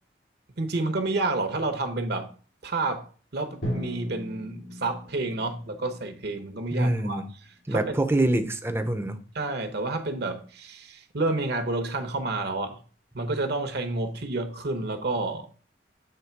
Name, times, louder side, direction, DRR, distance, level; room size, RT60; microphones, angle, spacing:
voice 1, 0.6-2.3 2.6-3.1 3.3-7.2 7.7-8.1 9.3-12.8 13.1-15.5, right 2 dB, 60° right, 1.0 m, -29 dB
Drum, 3.6-7.6, equal, 90° left, 2.5 m, -38 dB
voice 2, 6.7-7.3 7.7-9.2, right 1 dB, 15° right, 0.6 m, -25 dB
7.9 x 3.2 x 4.6 m
head